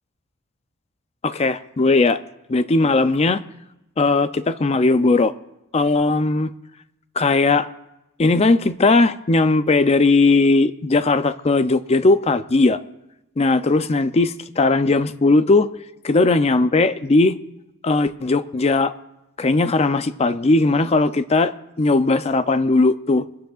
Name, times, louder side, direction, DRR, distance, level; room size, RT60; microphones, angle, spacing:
voice 1, 1.2-2.2 2.5-3.4 4.0-5.3 5.7-6.5 7.2-7.7 8.2-12.8 13.4-15.7 16.0-17.4 17.8-18.9 19.4-21.5 21.8-23.2, left 3 dB, 30° left, 0.4 m, -18 dB
28.0 x 10.0 x 2.4 m
head